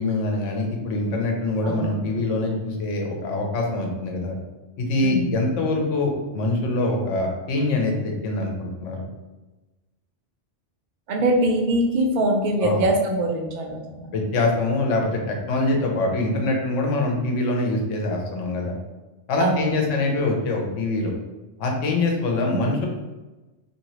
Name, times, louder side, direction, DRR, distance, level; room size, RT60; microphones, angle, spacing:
voice 1, 0.0-4.4 4.8-9.1 12.6-12.8 14.1-18.8 19.3-21.1 21.6-22.9, left 2 dB, 85° left, 0 dB, 1.0 m, -24 dB
voice 2, 11.1-14.1 19.4-19.7, right 1 dB, 55° right, 1 dB, 0.5 m, -22 dB
2.8 x 2.6 x 3.0 m, 1.1 s
omnidirectional pair, 1.2 m